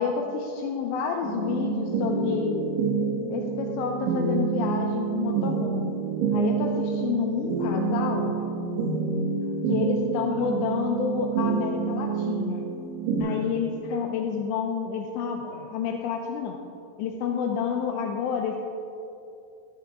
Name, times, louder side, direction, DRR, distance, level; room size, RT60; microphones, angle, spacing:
voice 1, 0.0-2.6 3.3-6.0 6.3-8.3 9.7-12.6 13.2-16.6 17.0-18.6, left 6 dB, 80° left, 1 dB, 2.8 m, -29 dB
sound 1, 1.2-13.2, right 5 dB, 80° right, 4.2 m, -27 dB
14.5 x 12.5 x 3.6 m, 2.7 s
omnidirectional pair, 5.4 m